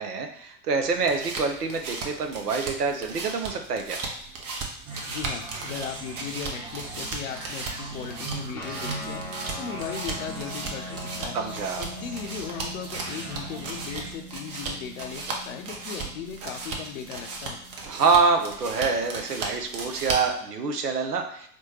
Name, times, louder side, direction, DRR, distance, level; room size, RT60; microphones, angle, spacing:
voice 1, 0.0-4.0 11.3-11.8 17.9-21.5, right 4 dB, 85° right, 5 dB, 0.7 m, -26 dB
sound 1, 0.8-20.4, right 3 dB, 30° right, 0.7 m, -36 dB
sound 2, 4.9-14.1, right 3 dB, 10° right, 0.4 m, -40 dB
voice 2, 5.1-9.2 9.6-11.4 11.8-17.6, left 8 dB, 60° left, 6 dB, 0.6 m, -37 dB
sound 3, 8.5-19.5, equal, 5° left, 0.9 m, -42 dB
4.1 x 2.2 x 3.1 m, 0.69 s
figure-of-eight pair, 85°, 46 cm